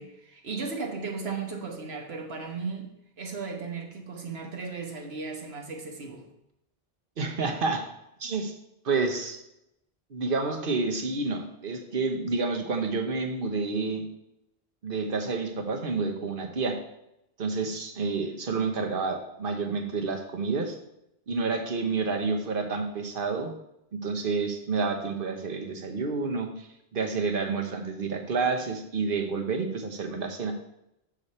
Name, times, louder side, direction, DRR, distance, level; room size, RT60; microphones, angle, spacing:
voice 1, 0.0-6.3, right 4 dB, 80° right, 2 dB, 1.4 m, -36 dB
voice 2, 7.2-7.9 8.2-8.5 8.8-9.4 10.1-14.0 14.8-16.8 17.4-20.7 21.3-23.5 24.0-30.5, right 4 dB, 60° right, 4 dB, 1.1 m, -29 dB
6.6 x 6.5 x 4.2 m, 0.84 s
omnidirectional pair, 1.0 m